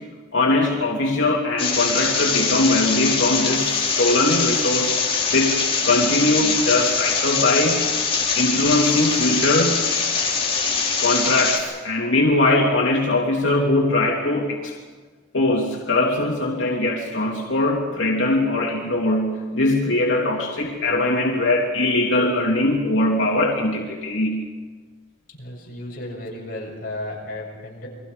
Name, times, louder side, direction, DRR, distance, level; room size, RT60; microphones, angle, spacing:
voice 1, 0.3-4.9 5.3-5.6 5.8-7.8 8.3-9.8 11.0-14.7 15.3-24.5, left 2 dB, 85° left, -2 dB, 2.8 m, -21 dB
sound 1, 1.6-11.6, left 5 dB, 30° left, 3.4 m, -23 dB
voice 2, 25.4-27.9, left 1 dB, 50° left, -2 dB, 7.7 m, -34 dB
29.5 x 22.5 x 5.2 m, 1.5 s
head